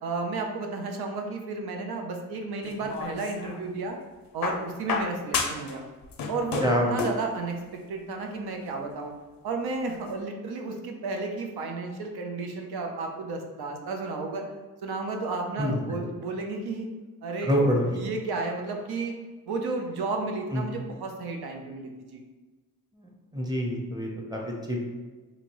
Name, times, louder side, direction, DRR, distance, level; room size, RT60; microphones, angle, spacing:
voice 1, 0.0-4.0 4.3-5.8 6.3-9.1 9.4-14.4 14.8-16.9 17.2-19.1 19.5-22.2, right 3 dB, 80° right, 2 dB, 0.6 m, -32 dB
sound 1, 2.6-3.6 4.4-5.8 6.0-7.3 8.4-8.5, left 4 dB, 60° left, 0.5 m, -31 dB
voice 2, 6.6-7.0 15.6-16.0 17.4-18.0 20.5-20.6 22.9-24.8, equal, 10° right, -1 dB, 0.7 m, -27 dB
2.8 x 2.6 x 2.9 m, 1.3 s
cardioid pair, 80°, 38 cm